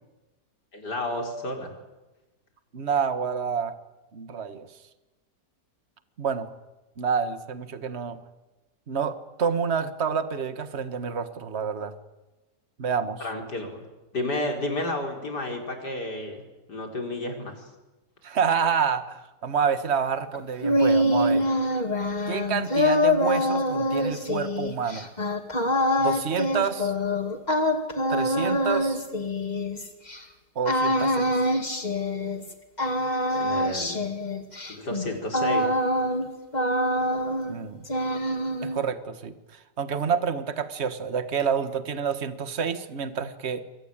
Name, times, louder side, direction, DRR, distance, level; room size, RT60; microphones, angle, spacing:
voice 1, 0.7-1.7 13.2-13.8 14.1-16.4 16.7-17.7 33.3-34.0 34.7-35.7, left 1 dB, 70° left, 3 dB, 5.4 m, -31 dB
voice 2, 2.7-3.7 4.1-4.7 6.2-6.5 7.0-8.2 8.9-11.9 12.8-13.2 18.2-21.5 22.3-25.1 26.0-26.9 28.1-29.0 30.6-31.5 37.5-37.9 38.6-39.3 39.8-43.6, right 6 dB, 40° right, 11 dB, 1.8 m, -28 dB
sound 1, 20.3-30.2 30.6-32.5 32.8-36.3 36.5-37.6 37.8-38.8, left 1 dB, 25° left, 2.6 m, -25 dB
27.5 x 24.5 x 9.0 m, 1.1 s
omnidirectional pair, 1.8 m